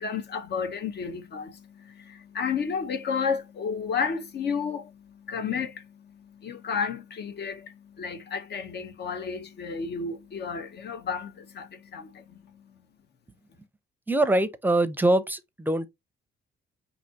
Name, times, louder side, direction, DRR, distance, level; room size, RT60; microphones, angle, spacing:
voice 1, 0.0-12.7, left 6 dB, 60° left, 0.9 m, -32 dB
voice 2, 14.1-15.9, right 1 dB, 10° right, 0.6 m, -23 dB
5.7 x 2.8 x 2.7 m
cardioid pair, 90°, 20 cm